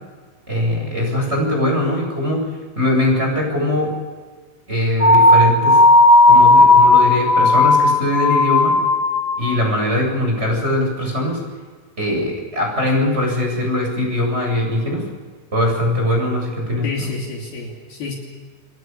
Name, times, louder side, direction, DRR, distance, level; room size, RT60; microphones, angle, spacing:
voice 1, 0.5-2.4 2.8-3.9 4.7-5.8 6.2-8.7 9.4-11.4 12.0-15.1 15.5-17.1, left 1 dB, 10° right, 1 dB, 7.8 m, -21 dB
sound 1, 5.0-9.6, left 2 dB, 25° left, 1.9 m, -13 dB
voice 2, 16.8-18.1, left 3 dB, 55° left, -1 dB, 4.6 m, -29 dB
28.5 x 22.5 x 7.1 m, 1.5 s
omnidirectional pair, 5.6 m